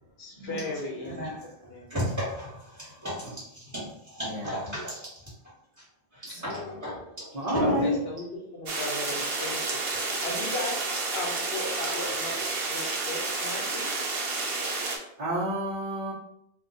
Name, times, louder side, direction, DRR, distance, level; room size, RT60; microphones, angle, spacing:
voice 1, 0.2-1.3 1.7-1.9 6.3-6.8 7.6-10.8 11.1-12.4 12.7-14.0, left 2 dB, 75° left, -1 dB, 1.1 m, -36 dB
voice 2, 1.9-3.3 3.7-3.9 4.1-4.9 6.4-7.0 7.3-7.8, equal, 15° right, -9 dB, 1.3 m, -33 dB
voice 3, 4.2-4.7 6.2-6.7 7.3-8.0 15.2-16.1, equal, 40° right, -8 dB, 0.9 m, -30 dB
sound 1, 8.7-15.0, right 3 dB, 70° right, 0.9 m, -30 dB
2.7 x 2.4 x 3.9 m, 0.76 s
omnidirectional pair, 1.0 m